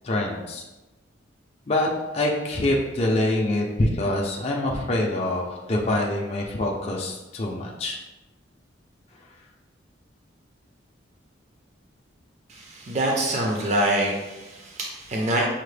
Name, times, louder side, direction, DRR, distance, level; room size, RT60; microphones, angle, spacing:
voice 1, 0.0-0.6 1.7-8.0, left 1 dB, 30° left, -1 dB, 0.4 m, -25 dB
voice 2, 12.5-15.4, right 1 dB, 35° right, -1 dB, 0.5 m, -25 dB
5.6 x 2.0 x 3.2 m, 1.1 s
head